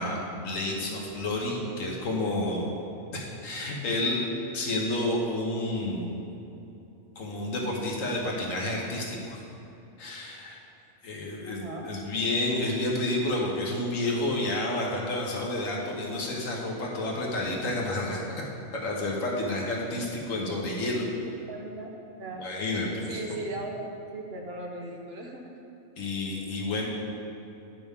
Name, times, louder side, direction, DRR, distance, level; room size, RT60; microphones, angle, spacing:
voice 1, 0.0-2.7 3.1-4.2 4.5-6.2 7.1-9.4 10.0-10.6 11.0-18.4 18.7-21.1 22.4-23.4 26.0-26.9, left 1 dB, 85° left, -2 dB, 1.5 m, -30 dB
voice 2, 11.4-11.9 21.5-22.5 23.0-25.5, right 2 dB, 55° right, 0 dB, 1.0 m, -38 dB
9.6 x 6.0 x 3.6 m, 2.9 s
omnidirectional pair, 1.3 m